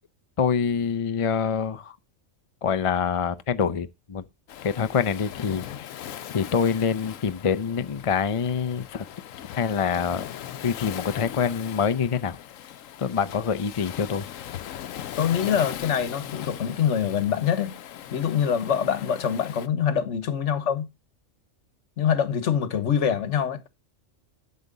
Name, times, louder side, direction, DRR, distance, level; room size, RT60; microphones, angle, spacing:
voice 1, 0.4-1.9 2.6-4.2 4.6-5.9 6.3-9.0 9.6-10.3 10.6-12.4 13.0-14.3, left 6 dB, 45° left, 0.4 m, -25 dB
Waves surf, 4.5-19.7, left 11 dB, 90° left, 1.1 m, -39 dB
voice 2, 15.2-17.7 18.1-20.9 22.0-23.8, left 8 dB, 65° left, 1.3 m, -24 dB
12.0 x 6.5 x 3.9 m
omnidirectional pair, 1.3 m